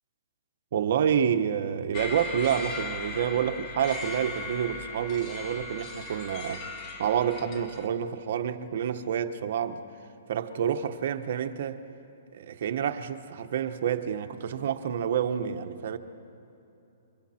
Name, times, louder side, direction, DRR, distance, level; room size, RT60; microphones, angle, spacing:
voice 1, 0.7-6.7 7.0-9.8 10.3-11.8 12.3-16.0, right 8 dB, 55° right, 1.2 m, -28 dB
sound 1, 1.9-7.9, left 3 dB, 25° left, 1.9 m, -38 dB
29.0 x 25.0 x 4.4 m
hypercardioid pair, 160°, 0 cm